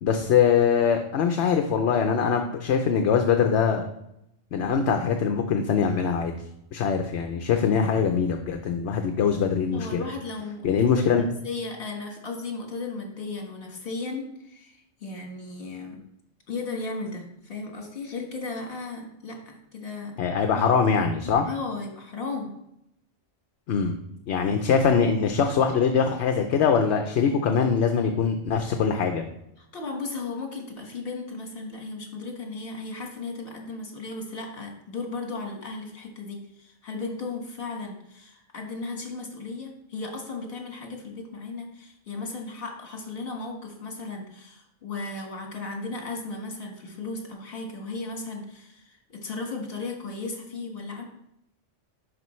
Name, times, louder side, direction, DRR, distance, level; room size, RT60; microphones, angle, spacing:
voice 1, 0.0-3.8 4.5-6.3 6.7-10.0 10.6-11.2 20.2-21.4 23.7-23.9 24.3-29.2, left 6 dB, 70° left, 5 dB, 0.9 m, -23 dB
voice 2, 9.7-16.0 16.5-20.1 20.5-20.7 21.1-22.5 29.6-51.0, left 3 dB, 55° left, 1 dB, 1.8 m, -35 dB
11.5 x 5.0 x 3.1 m, 0.80 s
omnidirectional pair, 1.2 m